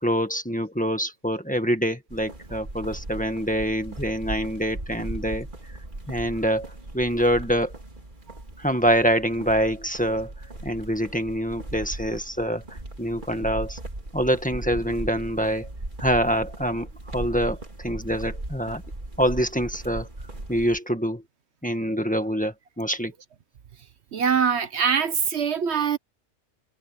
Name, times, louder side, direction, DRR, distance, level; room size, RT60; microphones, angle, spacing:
voice 1, 0.0-5.5 6.1-7.7 8.6-10.3 10.6-13.8 14.1-15.7 16.0-18.8 19.2-20.1 20.5-21.2 21.6-23.1, equal, 5° left, 1.7 m, -25 dB
sound 1, 2.1-20.8, right 2 dB, 40° right, 2.9 m, -38 dB
voice 2, 24.1-26.0, right 7 dB, 65° right, 1.2 m, -23 dB
omnidirectional pair, 1.2 m